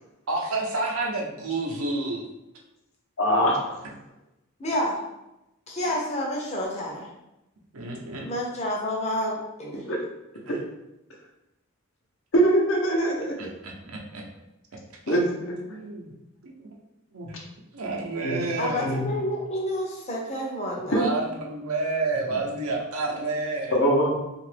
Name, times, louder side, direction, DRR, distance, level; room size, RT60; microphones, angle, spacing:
voice 1, 0.3-2.3 7.7-8.3 10.5-10.6 13.4-14.2 15.1-15.2 15.7-16.1 16.4-16.7 17.1-17.4 17.7-19.0 21.0-23.8, right 3 dB, 90° right, -1 dB, 0.7 m, -30 dB
voice 2, 3.2-3.8 9.9-10.0 12.3-13.4 15.1-15.6 18.2-18.4 18.8-19.1 20.9-21.1 23.7-24.2, right 1 dB, 65° left, -1 dB, 0.7 m, -23 dB
voice 3, 4.6-5.0 5.7-7.1 8.2-9.8 18.6-21.0, left 1 dB, 30° left, -1 dB, 0.6 m, -29 dB
2.8 x 2.5 x 3.3 m, 0.93 s
head